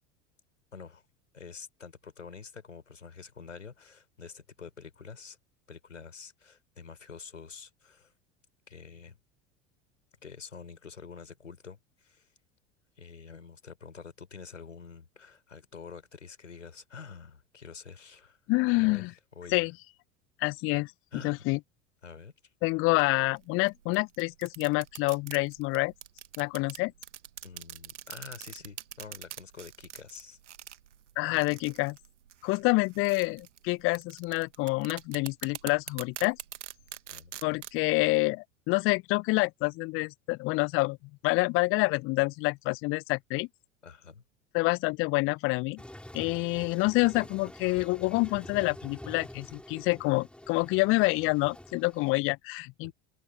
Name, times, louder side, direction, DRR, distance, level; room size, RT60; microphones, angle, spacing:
voice 1, 0.7-1.0 1.3-5.4 5.7-8.1 8.7-9.2 10.2-12.3 13.0-18.4 18.7-19.1 19.3-19.7 21.1-21.5 22.0-22.3 27.4-30.4 37.1-37.3 43.8-44.2 52.8-52.9, left 5 dB, 80° left, 4.6 m, -47 dB
voice 2, 18.5-19.1 19.5-19.7 20.4-21.6 22.6-25.9 26.4-26.9 31.2-32.0 32.4-36.4 37.4-41.0 41.2-43.5 44.5-45.8 46.1-52.9, left 24 dB, 35° left, 0.5 m, -27 dB
sound 1, 23.4-37.8, right 10 dB, 75° right, 1.6 m, -45 dB
Toilet flush, 45.8-52.1, left 1 dB, 5° left, 5.1 m, -47 dB
figure-of-eight pair, 75°, 37 cm